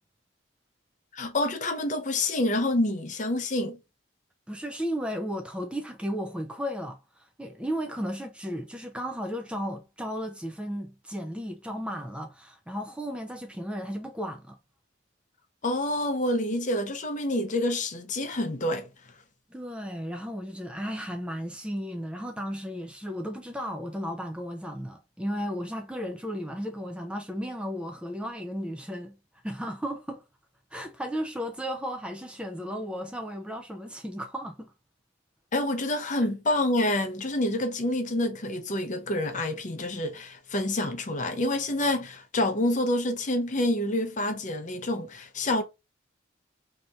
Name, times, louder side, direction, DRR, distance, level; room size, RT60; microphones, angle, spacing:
voice 1, 1.1-3.8 15.6-18.9 35.5-45.6, left 1 dB, 40° left, 0.6 m, -27 dB
voice 2, 4.5-14.6 19.5-29.2 29.4-30.2 30.7-34.7, equal, 5° right, 0.3 m, -34 dB
2.8 x 2.5 x 4.2 m
head